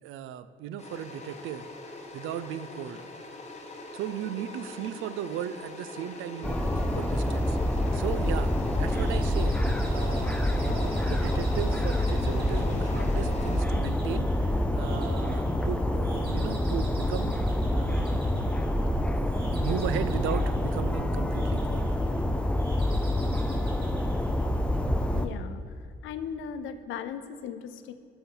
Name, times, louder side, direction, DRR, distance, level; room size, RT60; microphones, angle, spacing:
voice 1, 0.0-3.0 3.9-7.6 7.9-8.5 8.8-9.5 9.9-17.3 17.7-18.1 19.1-21.9, right 10 dB, 85° right, 13 dB, 0.4 m, -36 dB
sound 1, 0.8-13.6, left 3 dB, 35° left, 1.0 m, -43 dB
sound 2, 6.4-25.3, left 1 dB, 5° left, 0.4 m, -27 dB
sound 3, 8.9-25.0, right 2 dB, 55° right, 1.8 m, -50 dB
voice 2, 25.1-25.6 26.0-27.9, left 7 dB, 85° left, 11 dB, 0.5 m, -37 dB
12.5 x 4.3 x 3.8 m, 2.4 s
cardioid pair, 90°, 20 cm